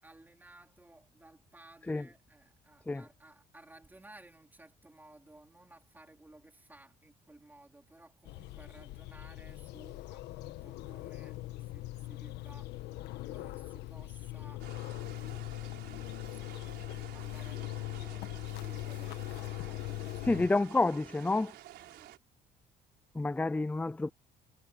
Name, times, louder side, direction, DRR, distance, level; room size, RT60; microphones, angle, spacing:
voice 1, 0.0-13.0 13.3-14.7 15.1-16.4 16.7-20.6 21.8-22.2, right 2 dB, 10° right, 3.9 m, -58 dB
sound 1, 8.2-20.5, left 17 dB, 85° left, 1.3 m, -41 dB
sound 2, 14.6-22.2, right 15 dB, 80° right, 5.2 m, -52 dB
voice 2, 20.2-21.6 23.1-24.1, left 2 dB, 10° left, 0.5 m, -29 dB
cardioid pair, 110°, 17 cm